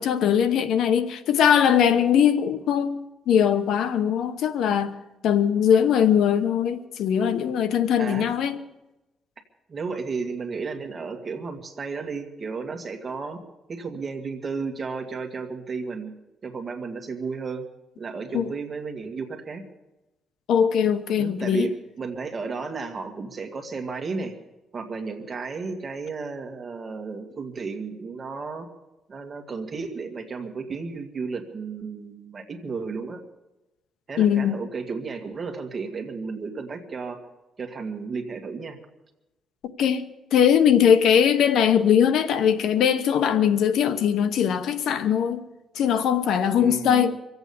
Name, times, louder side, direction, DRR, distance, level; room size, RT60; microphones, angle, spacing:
voice 1, 0.0-4.9 5.2-8.6 18.3-18.5 20.5-21.7 34.2-34.6 39.8-40.0 40.3-45.5 45.8-47.2, left 8 dB, 75° left, 0.9 m, -21 dB
voice 2, 8.0-8.3 9.7-13.4 13.7-16.1 16.4-17.6 18.0-19.6 21.2-24.3 24.7-28.7 29.1-33.2 34.1-37.2 37.6-38.8 46.5-47.1, right 4 dB, 30° right, 1.7 m, -33 dB
24.0 x 8.2 x 6.9 m
cardioid pair, 140°, 0 cm